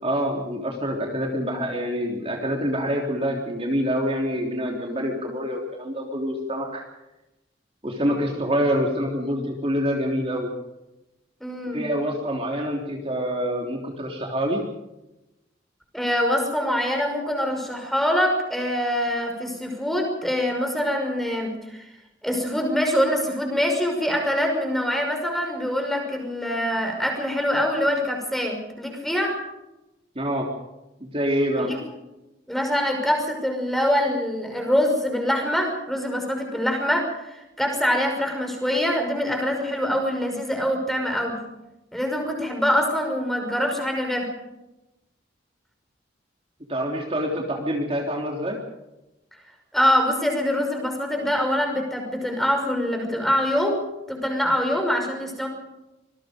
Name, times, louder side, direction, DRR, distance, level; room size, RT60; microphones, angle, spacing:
voice 1, 0.0-6.8 7.8-10.5 11.7-14.6 30.1-30.5 31.0-31.7 46.7-48.6, equal, 30° right, 0 dB, 3.4 m, -26 dB
voice 2, 11.4-11.8 15.9-21.9 22.2-29.3 31.6-31.8 32.5-41.4 41.9-44.3 49.7-55.5, equal, ahead, 3 dB, 5.7 m, -24 dB
26.0 x 21.5 x 5.2 m, 0.96 s
head